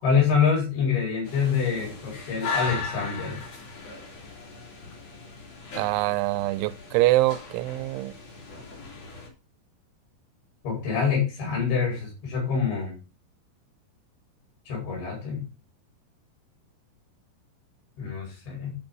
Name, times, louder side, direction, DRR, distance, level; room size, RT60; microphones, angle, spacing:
voice 1, 0.0-3.4 10.6-13.0 14.7-15.4 18.0-18.7, left 6 dB, 70° left, 7.5 m, -26 dB
sound 1, 1.2-9.3, left 4 dB, 40° left, 3.1 m, -37 dB
voice 2, 5.8-8.1, right 18 dB, 85° right, 3.0 m, -24 dB
11.5 x 5.3 x 5.5 m
omnidirectional pair, 5.3 m